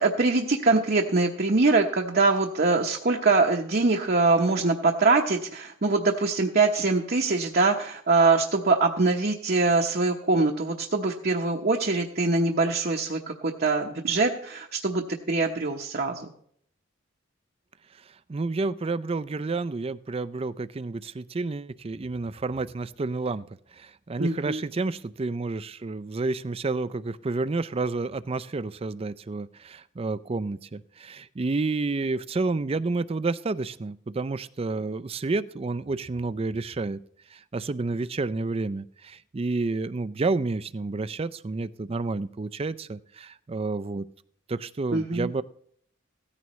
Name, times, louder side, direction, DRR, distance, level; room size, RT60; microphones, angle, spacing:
voice 1, 0.0-16.3 24.2-24.6 44.9-45.3, right 3 dB, 50° right, 1 dB, 0.9 m, -23 dB
voice 2, 18.3-23.5 23.7-37.0 37.3-44.1 44.5-45.4, right 3 dB, 30° right, 16 dB, 0.4 m, -30 dB
17.0 x 14.0 x 3.1 m, 0.65 s
head